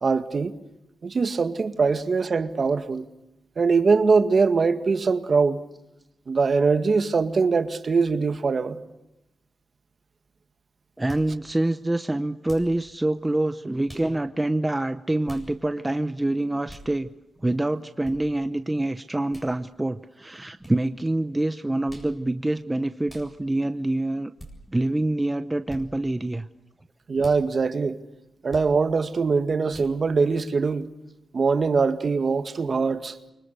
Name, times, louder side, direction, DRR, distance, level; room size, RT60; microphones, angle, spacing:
voice 1, 0.0-0.6 1.0-3.1 3.6-5.6 6.3-8.8 27.1-28.0 28.4-30.9 31.3-33.2, right 4 dB, 45° right, 1.9 m, -22 dB
voice 2, 11.0-17.1 17.4-24.3 24.7-26.5, right 1 dB, 15° right, 0.8 m, -26 dB
sound 1, 11.1-11.3 12.4-12.7 13.9-14.1 15.2-15.5 16.7-16.9 18.0-18.2 19.3-19.5 20.6-20.8 21.9-22.1 23.1-23.3 24.4-24.5 25.7-25.8 27.2-27.4 28.5-28.7 29.7-29.9, equal, 10° left, 7.7 m, -43 dB
28.5 x 25.0 x 6.8 m
wide cardioid pair, 115°, 0 cm